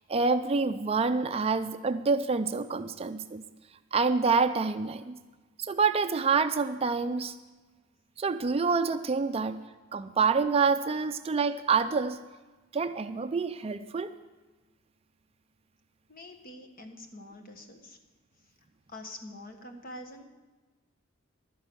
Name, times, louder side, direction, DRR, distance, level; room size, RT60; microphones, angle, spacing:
voice 1, 0.1-3.4 3.9-5.2 5.6-7.3 8.2-9.6 9.9-12.2 12.7-14.1, right 4 dB, 30° right, 9 dB, 0.4 m, -27 dB
voice 2, 16.1-18.0 18.9-20.2, left 1 dB, 45° left, 4 dB, 1.4 m, -45 dB
12.0 x 10.0 x 6.2 m, 1.2 s
head